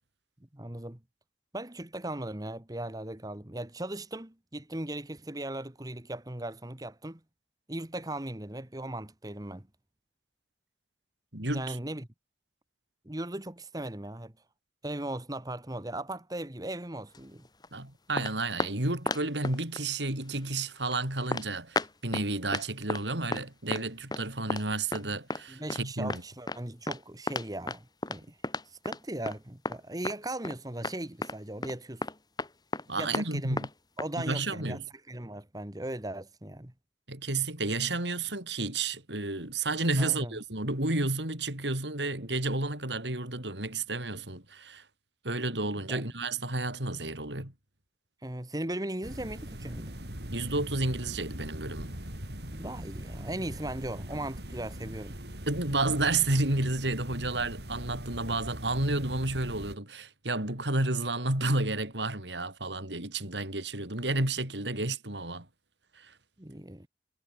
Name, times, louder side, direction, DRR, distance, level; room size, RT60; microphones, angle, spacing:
voice 1, 0.5-1.0 1.5-7.2 7.7-9.7 11.5-12.1 13.0-14.3 14.8-17.4 25.5-27.8 28.1-28.4 28.7-32.1 33.0-33.6 34.0-34.8 35.1-36.7 40.0-40.4 45.9-46.1 48.2-49.9 52.5-55.2 66.4-66.9, right 1 dB, 20° right, 1.5 m, -38 dB
voice 2, 11.3-11.8 17.7-26.2 32.9-33.7 34.2-34.8 37.1-44.8 45.2-47.5 50.3-51.9 55.5-65.5 66.0-66.1, right 2 dB, 90° right, 6.0 m, -31 dB
sound 1, 17.1-17.7 18.2-18.7 19.1-19.8 20.3-20.4 20.9-21.0 21.3-21.5 21.8-22.3 22.5-23.0 23.3-23.5 23.7-24.2 24.5-24.6 24.9-25.0 25.3-25.4 25.7-25.8 26.1-26.2 26.5-26.6 26.9-27.0 27.3-29.0 29.3-29.4 29.7-30.2 30.4-30.6 30.8-31.0 31.2-31.4 31.6-31.8 32.0-32.8 33.1-33.3 33.6-33.7 34.0-34.1, left 2 dB, 25° left, 3.2 m, -33 dB
sound 2, 49.0-59.7, equal, 70° right, 7.4 m, -41 dB
head